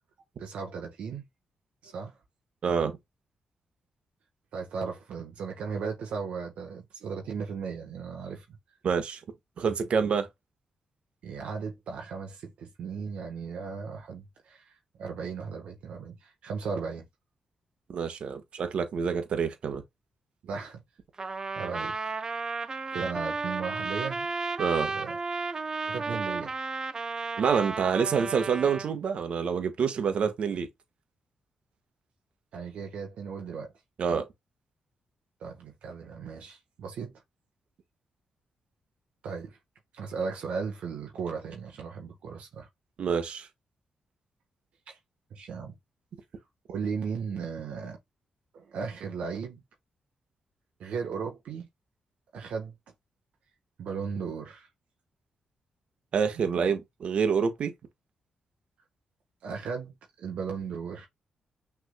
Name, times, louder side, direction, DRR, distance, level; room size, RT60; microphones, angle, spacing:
voice 1, 0.4-1.2 1.8-2.2 4.5-8.6 11.2-17.1 20.4-20.8 21.5-22.1 22.9-24.3 24.9-25.2 25.8-26.6 32.5-33.7 35.4-37.2 39.2-39.6 39.9-42.7 44.9-45.0 45.3-45.7 46.7-48.0 48.5-49.6 50.8-51.7 52.3-52.7 53.8-54.7 56.4-56.7 59.4-61.1, right 5 dB, 80° right, 1.1 m, -36 dB
voice 2, 2.6-2.9 8.8-9.2 9.6-10.3 17.9-19.8 24.6-24.9 27.4-30.7 34.0-34.3 43.0-43.5 56.1-57.7, right 6 dB, 65° right, 1.3 m, -27 dB
Trumpet, 21.2-28.9, right 4 dB, 35° right, 0.6 m, -33 dB
6.3 x 3.6 x 2.2 m
cardioid pair, 100°, 2 cm